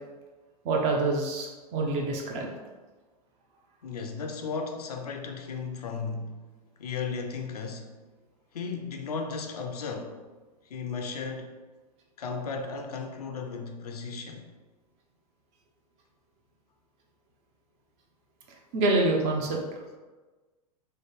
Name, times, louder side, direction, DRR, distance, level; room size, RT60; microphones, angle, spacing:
voice 1, 0.6-2.5 18.7-19.6, right 2 dB, 35° right, 0.6 m, -26 dB
voice 2, 3.8-6.4 6.8-7.9 8.5-10.2 10.7-11.5 12.2-14.5, left 5 dB, 65° left, 0.5 m, -35 dB
3.2 x 2.0 x 3.3 m
figure-of-eight pair, 95°, 21 cm